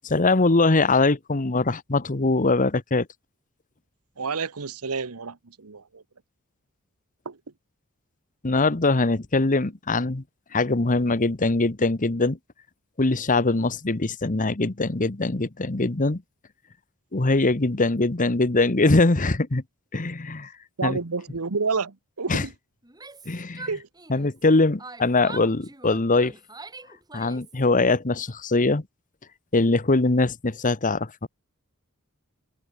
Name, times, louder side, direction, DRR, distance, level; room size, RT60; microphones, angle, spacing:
voice 1, 0.0-3.1 8.4-10.2 10.5-12.4 13.0-16.2 17.1-19.6 19.9-20.5 20.8-21.0 22.3-22.4 23.3-23.7 24.1-26.3 27.1-28.8 29.5-31.3, left 3 dB, 35° left, 1.1 m, -22 dB
voice 2, 4.2-6.0 7.2-7.4 20.8-22.5 23.7-23.9, right 4 dB, 90° right, 1.2 m, -29 dB
Yell, 22.8-24.5 24.8-27.6, right 3 dB, 20° right, 4.7 m, -43 dB
head